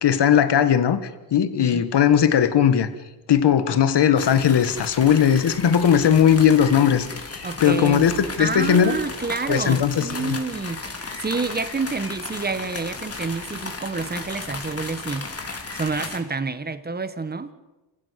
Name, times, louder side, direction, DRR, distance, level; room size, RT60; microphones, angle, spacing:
voice 1, 0.0-1.0 1.3-2.9 3.3-7.1 7.6-8.1 8.4-9.0 9.5-10.4, left 8 dB, 70° left, 11 dB, 1.8 m, -18 dB
sound 1, 4.2-16.2, left 3 dB, 35° left, 3.4 m, -35 dB
voice 2, 7.4-8.0 8.4-10.8 11.1-15.3 15.7-17.5, right 4 dB, 20° right, 12 dB, 1.5 m, -28 dB
27.5 x 15.5 x 8.3 m, 1.1 s
cardioid pair, 105°, 43 cm